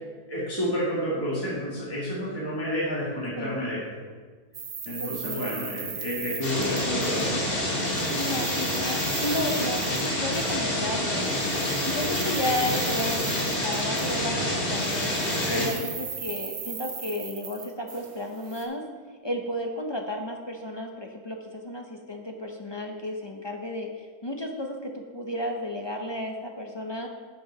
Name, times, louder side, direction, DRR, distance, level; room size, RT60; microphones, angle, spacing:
voice 1, 0.3-3.8 4.9-7.5 15.3-15.7, equal, 15° left, -7 dB, 1.7 m, -30 dB
sound 1, 4.5-7.5 7.8-10.6 11.2-14.4 14.7-18.6, right 6 dB, 65° right, 1.5 m, -38 dB
voice 2, 5.0-5.6 7.2-7.6 8.1-11.3 11.8-15.1 15.5-18.8 19.2-23.9 24.2-27.1, left 1 dB, 35° left, 2 dB, 0.4 m, -33 dB
sound 2, 6.4-15.7, left 1 dB, 70° left, 2.6 m, -27 dB
7.6 x 6.9 x 5.6 m, 1.5 s
omnidirectional pair, 1.6 m